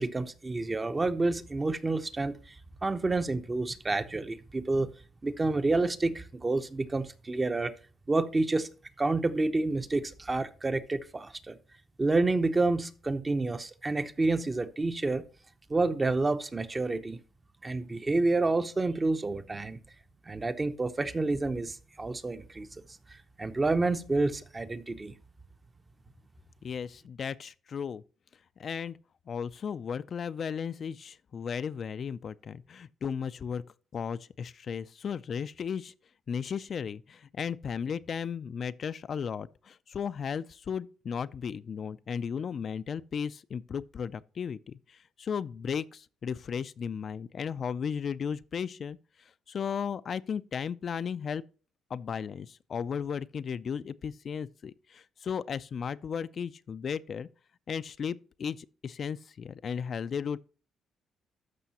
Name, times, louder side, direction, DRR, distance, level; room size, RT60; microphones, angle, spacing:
voice 1, 0.0-2.5 2.8-4.9 5.2-7.7 8.1-8.7 9.0-11.6 12.0-15.3 15.7-17.2 17.6-19.8 20.3-22.7 23.4-25.1, right 3 dB, 25° right, 0.7 m, -29 dB
voice 2, 26.6-28.0 28.6-29.0 29.3-33.6 33.9-35.9 36.3-51.4 51.9-57.3 57.7-60.4, left 7 dB, 50° left, 0.3 m, -35 dB
13.0 x 5.5 x 2.9 m
cardioid pair, 90°, 0 cm